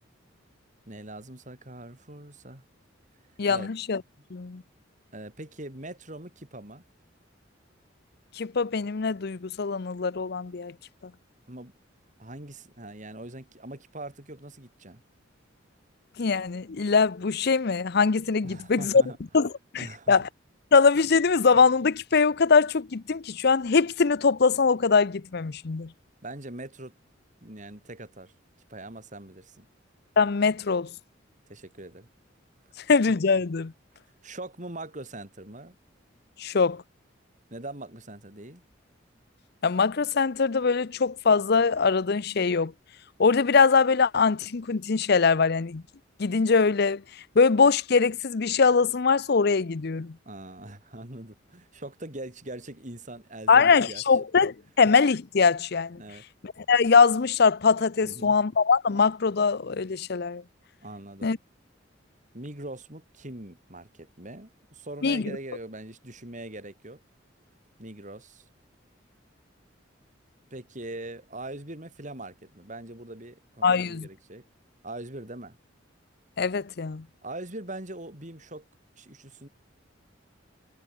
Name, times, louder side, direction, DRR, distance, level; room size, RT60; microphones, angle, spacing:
voice 1, 0.9-2.6 3.4-3.7 4.2-4.3 5.1-6.8 11.5-11.7 12.2-15.0 18.4-19.2 19.8-20.2 26.2-26.9 27.4-28.3 28.7-29.7 31.5-32.1 32.7-32.8 34.2-35.8 37.5-38.6 50.2-54.0 56.0-56.2 58.0-58.4 60.8-61.3 62.3-67.0 67.8-68.4 70.5-74.5 74.8-75.6 77.2-78.6 79.0-79.5, right 1 dB, 40° right, 4.9 m, -41 dB
voice 2, 3.4-4.0 4.3-4.6 8.4-10.7 16.2-19.0 19.3-20.3 20.7-25.9 30.2-30.9 32.9-33.7 36.4-36.8 39.6-42.7 43.2-45.8 46.2-47.0 47.4-50.2 53.5-56.0 56.4-60.4 61.2-61.4 65.0-65.4 73.6-74.1 76.4-77.0, left 5 dB, 55° left, 0.6 m, -22 dB
head